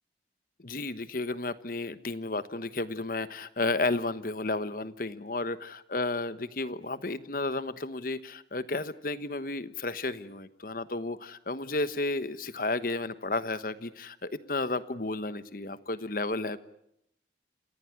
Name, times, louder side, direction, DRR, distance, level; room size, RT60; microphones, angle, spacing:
voice 1, 0.6-16.6, left 2 dB, 50° left, 13 dB, 1.2 m, -32 dB
28.0 x 16.0 x 10.0 m, 0.78 s
head